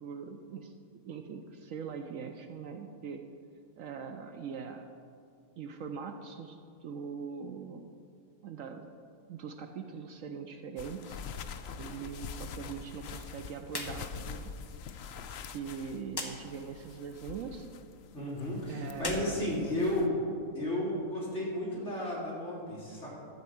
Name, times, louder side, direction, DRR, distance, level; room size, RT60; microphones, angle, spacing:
voice 1, 0.0-3.2 3.8-4.9 5.6-7.8 8.4-8.9 9.3-11.2 11.8-14.6 15.5-17.7 18.7-19.4, right 6 dB, 70° right, 6 dB, 0.9 m, -42 dB
sound 1, 10.8-20.1, left 6 dB, 70° left, 0.6 m, -45 dB
sound 2, 13.7-14.0 14.3-14.4 16.1-16.3 18.9-20.2, left 2 dB, 20° left, 0.8 m, -38 dB
voice 2, 18.1-20.1 20.5-23.1, left 1 dB, 50° left, -7 dB, 3.6 m, -33 dB
12.0 x 4.6 x 7.8 m, 2.4 s
omnidirectional pair, 1.6 m